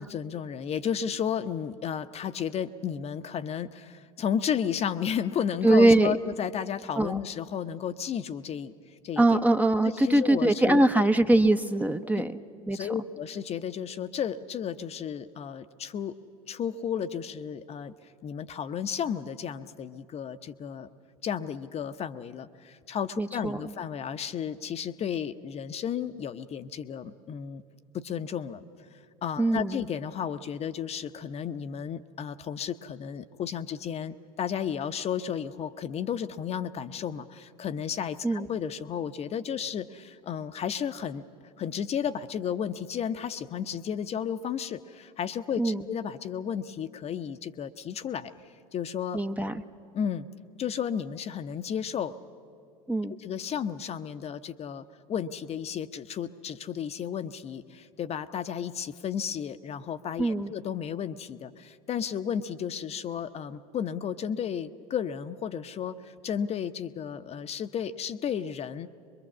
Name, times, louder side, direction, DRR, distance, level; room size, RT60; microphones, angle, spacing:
voice 1, 0.0-8.7 9.0-9.4 9.8-10.8 12.7-16.2 16.5-17.9 18.2-20.9 21.2-27.6 27.9-28.6 29.2-41.2 41.6-48.3 48.7-49.2 49.9-50.3 50.6-52.1 53.1-68.9, left 8 dB, 35° left, 10 dB, 0.7 m, -33 dB
voice 2, 5.6-6.2 7.0-7.2 9.2-12.3 12.7-12.8 23.2-23.6 29.4-29.8 38.2-38.5 45.6-45.8 49.1-49.6 52.9-53.1 60.2-60.5, right 2 dB, 10° right, 8 dB, 0.7 m, -22 dB
23.0 x 22.5 x 7.3 m, 2.3 s
figure-of-eight pair, 75°, 19 cm